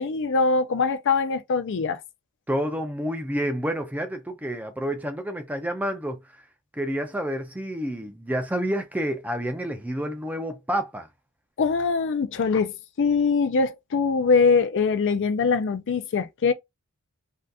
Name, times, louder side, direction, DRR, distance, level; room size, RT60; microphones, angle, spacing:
voice 1, 0.0-2.0 11.6-16.5, left 4 dB, 55° left, 0.4 m, -23 dB
voice 2, 2.5-6.2 6.7-11.1, equal, 5° right, 0.4 m, -29 dB
2.6 x 2.4 x 3.5 m
head